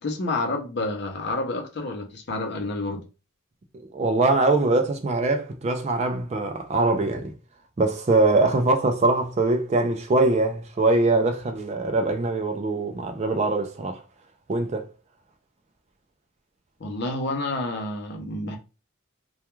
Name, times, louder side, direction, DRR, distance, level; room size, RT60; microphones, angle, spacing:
voice 1, 0.0-3.0 16.8-18.6, left 2 dB, 50° left, 0.5 m, -29 dB
voice 2, 3.7-7.3 7.8-14.0 14.5-14.9, right 2 dB, 30° right, 0.3 m, -22 dB
2.3 x 2.2 x 3.0 m
head